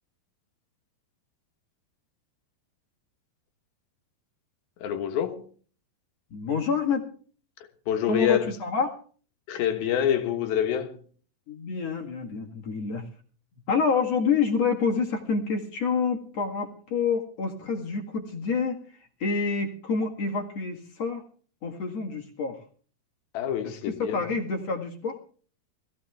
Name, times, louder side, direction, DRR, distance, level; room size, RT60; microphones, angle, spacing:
voice 1, 4.8-5.5 7.9-8.5 9.5-10.9 23.3-24.2, left 10 dB, 70° left, 3.1 m, -26 dB
voice 2, 6.3-7.0 8.1-9.0 11.5-13.0 13.7-18.8 19.2-21.2 21.6-22.6 23.6-25.2, left 5 dB, 50° left, 2.5 m, -27 dB
20.0 x 15.5 x 3.4 m
omnidirectional pair, 4.5 m